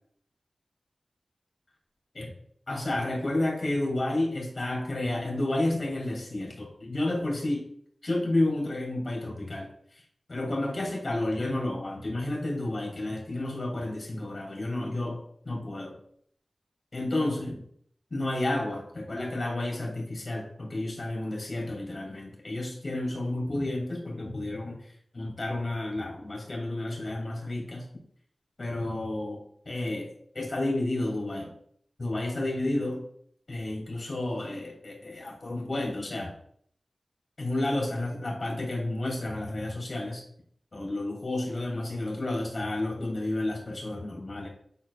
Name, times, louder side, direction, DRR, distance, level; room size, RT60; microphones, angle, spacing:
voice 1, 2.7-7.6 8.0-10.0 10.3-15.9 16.9-17.6 18.1-24.8 25.1-27.8 28.6-31.5 32.0-33.0 33.5-36.3 37.4-40.2 40.7-44.5, left 1 dB, 60° left, -1 dB, 2.6 m, -31 dB
9.6 x 4.4 x 2.4 m, 0.64 s
cardioid pair, 40°, 0 cm